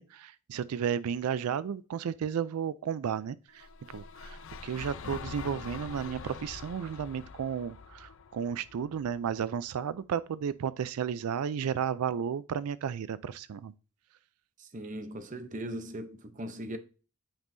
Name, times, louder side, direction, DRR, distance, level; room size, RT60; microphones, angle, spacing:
voice 1, 0.0-3.7 3.9-13.7, right 7 dB, 90° right, 0.4 m, -33 dB
sound 1, 3.5-9.7, left 5 dB, 60° left, 0.5 m, -45 dB
voice 2, 14.6-16.8, right 1 dB, 35° right, 0.7 m, -39 dB
8.8 x 5.4 x 2.6 m
head